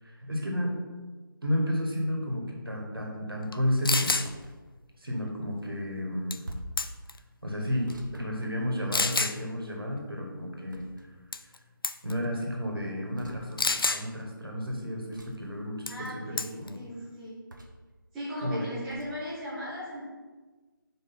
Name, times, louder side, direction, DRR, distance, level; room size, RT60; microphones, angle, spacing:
voice 1, 0.0-0.8 1.4-4.2 5.0-6.4 7.4-11.1 11.4-11.5 12.0-16.8 18.4-18.7, equal, 80° right, 0 dB, 1.7 m, -32 dB
sound 1, 3.5-3.6 3.8-4.3 6.3-6.5 6.8-7.2 7.9-8.0 8.9-9.4 11.3-11.6 11.8-12.1 13.6-14.0 15.9-16.1 16.4-16.7, left 3 dB, 80° left, 0.5 m, -27 dB
sound 2, 4.2-4.6 6.4-6.9 7.9-9.0 10.7-11.3 13.1-13.4 15.1-15.5 17.5-17.9 18.9-19.1, right 1 dB, 60° right, 0.9 m, -45 dB
voice 2, 15.9-17.4 18.1-20.0, equal, ahead, -10 dB, 0.3 m, -37 dB
5.0 x 4.1 x 5.7 m, 1.3 s
figure-of-eight pair, 155°, 12 cm